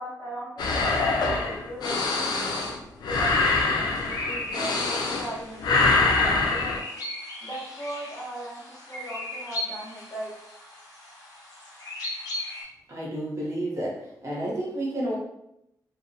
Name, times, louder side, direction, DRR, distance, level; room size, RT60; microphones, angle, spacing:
voice 1, 0.0-2.6 3.0-6.8 7.4-10.3, right 1 dB, 35° left, -6 dB, 0.9 m, -38 dB
sound 1, 0.6-5.4 5.6-6.8, left 3 dB, 85° left, 0.4 m, -24 dB
sound 2, 3.9-12.6, left 1 dB, 65° left, 0.8 m, -38 dB
voice 2, 12.9-15.2, right 1 dB, 45° right, -5 dB, 0.7 m, -31 dB
2.5 x 2.0 x 2.6 m, 0.81 s
wide cardioid pair, 155°, 7 cm